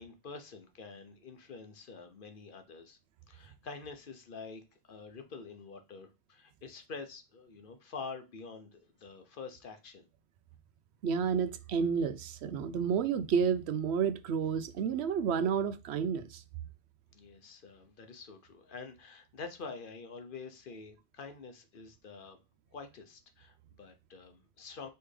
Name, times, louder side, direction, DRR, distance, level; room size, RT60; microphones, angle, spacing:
voice 1, 0.0-3.0 3.3-10.1 17.1-22.4 22.7-24.9, left 4 dB, 55° left, 0.9 m, -47 dB
voice 2, 11.0-16.4, right 6 dB, 85° right, 0.9 m, -30 dB
4.4 x 3.4 x 3.2 m
omnidirectional pair, 1.1 m